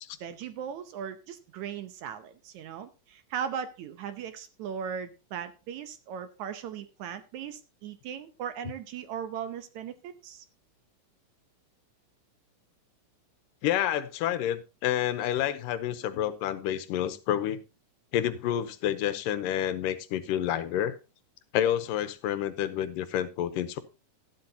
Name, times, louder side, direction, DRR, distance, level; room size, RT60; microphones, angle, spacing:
voice 1, 0.2-10.4, right 8 dB, 70° right, 2.0 m, -38 dB
voice 2, 13.6-17.6 18.1-21.0 21.5-23.8, left 11 dB, 90° left, 2.4 m, -29 dB
12.5 x 12.0 x 2.8 m
omnidirectional pair, 3.8 m